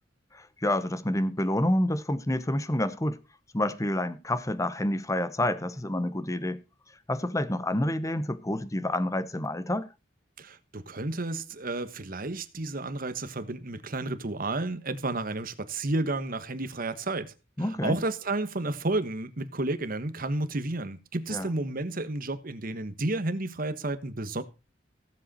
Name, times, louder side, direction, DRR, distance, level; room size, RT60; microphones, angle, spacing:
voice 1, 0.3-3.2 3.5-6.6 7.1-9.9 17.6-18.0 21.3-21.5, left 1 dB, 15° left, 0.9 m, -28 dB
voice 2, 10.4-24.4, right 2 dB, 50° right, 1.3 m, -31 dB
16.0 x 7.7 x 4.2 m
head